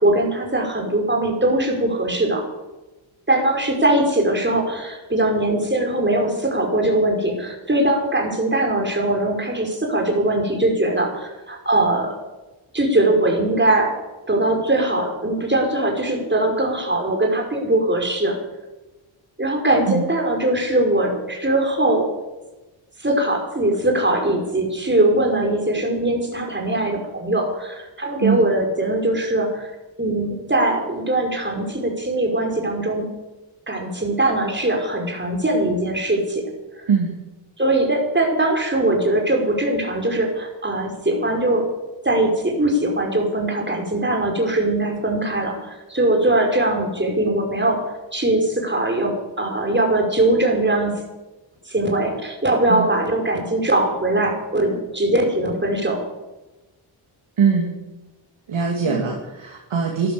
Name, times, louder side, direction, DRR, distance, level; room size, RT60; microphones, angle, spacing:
voice 1, 0.0-2.4 3.3-12.1 12.7-13.9 14.3-18.4 19.4-22.1 23.0-29.7 30.0-33.1 33.7-36.4 37.6-41.7 42.0-47.8 48.1-50.9 51.7-56.0 58.9-59.0, right 1 dB, 25° right, 1 dB, 5.2 m, -21 dB
voice 2, 57.4-57.7 58.5-60.1, right 6 dB, 80° right, 0 dB, 2.7 m, -21 dB
13.5 x 13.0 x 7.0 m, 1.1 s
cardioid pair, 65°, 48 cm